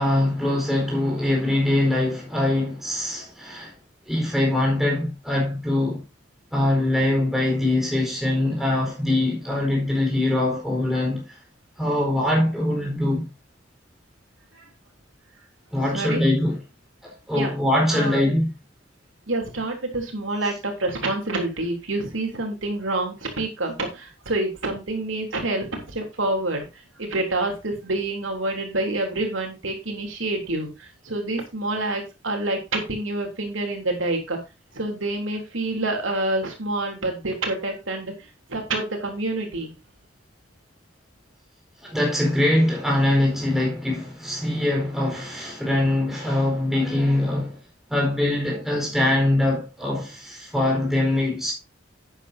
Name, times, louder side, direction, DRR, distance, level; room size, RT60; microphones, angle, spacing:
voice 1, 0.0-3.7 4.1-6.0 6.5-11.2 11.8-13.3 15.7-16.6 17.0-18.5 41.8-47.6 47.9-51.5, left 1 dB, ahead, 4.4 m, -23 dB
voice 2, 15.8-16.2 17.3-17.5 17.9-18.3 19.3-34.4 34.7-39.7, right 2 dB, 80° right, 3.3 m, -27 dB
11.0 x 9.1 x 2.8 m
head